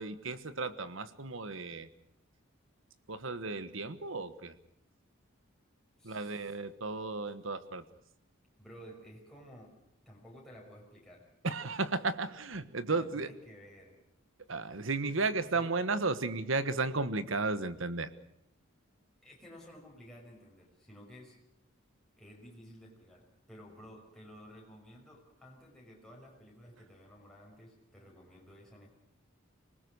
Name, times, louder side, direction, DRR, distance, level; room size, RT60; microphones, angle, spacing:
voice 1, 0.0-1.9 3.1-4.5 6.0-7.9 11.4-13.3 14.5-18.1, right 3 dB, 70° right, 13 dB, 1.4 m, -34 dB
voice 2, 6.0-6.6 8.6-9.8 10.1-11.3 12.9-14.0 15.5-15.7 19.2-21.4 22.1-29.0, equal, ahead, -3 dB, 5.7 m, -53 dB
26.5 x 19.5 x 6.4 m, 0.75 s
head